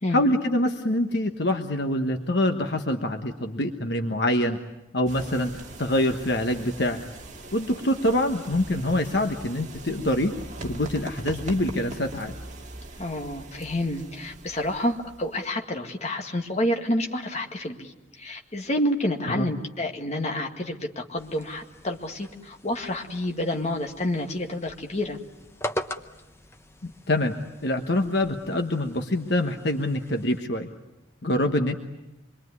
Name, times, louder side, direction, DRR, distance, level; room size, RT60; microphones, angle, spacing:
voice 1, 0.1-4.6 4.9-5.5 5.8-7.0 7.5-10.3 10.6-12.3 19.3-19.5 26.8-27.3 27.6-30.7 31.2-31.7, left 1 dB, 55° left, 5 dB, 1.2 m, -25 dB
sound 1, 5.1-15.4, right 2 dB, 40° right, 2.0 m, -41 dB
voice 2, 13.0-25.2, left 1 dB, 35° left, 3 dB, 1.9 m, -29 dB
sound 2, 21.2-30.4, equal, 15° left, 0.9 m, -41 dB
26.5 x 22.5 x 9.6 m, 0.97 s
head